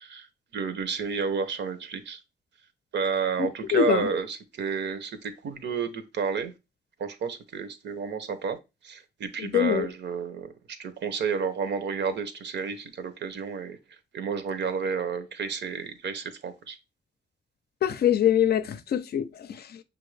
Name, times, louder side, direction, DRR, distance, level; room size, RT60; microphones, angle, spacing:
voice 1, 0.0-2.2 2.9-6.5 7.0-8.6 8.8-13.8 14.1-16.8, right 5 dB, 75° right, 0.7 m, -31 dB
voice 2, 3.7-4.1 9.4-9.9 17.8-19.8, left 10 dB, 60° left, 0.5 m, -24 dB
6.4 x 2.5 x 3.2 m
cardioid pair, 115°, 18 cm